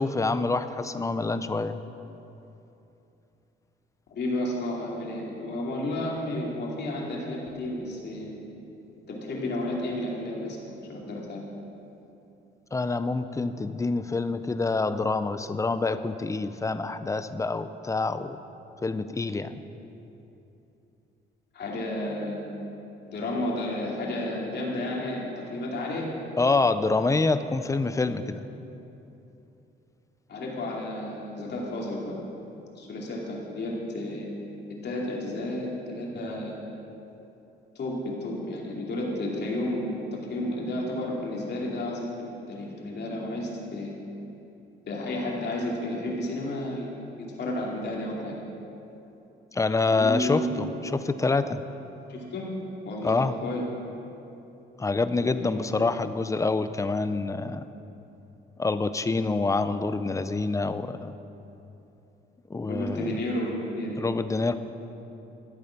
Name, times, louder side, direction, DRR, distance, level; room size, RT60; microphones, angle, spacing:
voice 1, 0.0-1.8 12.7-18.4 18.8-19.5 26.4-28.4 49.5-51.6 53.0-53.3 54.8-57.6 58.6-61.1 62.5-63.1 64.0-64.5, left 3 dB, 15° left, 11 dB, 0.6 m, -26 dB
voice 2, 4.1-8.3 9.1-11.4 21.5-22.5 23.1-26.1 27.9-28.0 30.3-32.2 32.8-34.3 34.8-36.5 37.7-43.9 44.9-48.3 49.9-50.7 52.1-52.5 52.8-53.7 55.2-55.7 62.6-64.0, left 1 dB, 55° left, -3 dB, 2.8 m, -32 dB
13.0 x 8.7 x 5.9 m, 2.9 s
cardioid pair, 90°, 20 cm